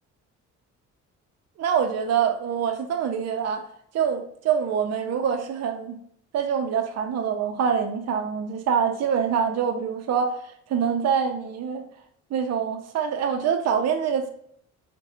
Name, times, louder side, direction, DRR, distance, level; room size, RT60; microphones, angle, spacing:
voice 1, 1.6-3.7 3.9-6.0 6.3-10.4 10.7-11.8 12.3-14.3, right 7 dB, 60° right, 0.6 m, -25 dB
4.8 x 2.2 x 2.7 m
cardioid pair, 90°, 30 cm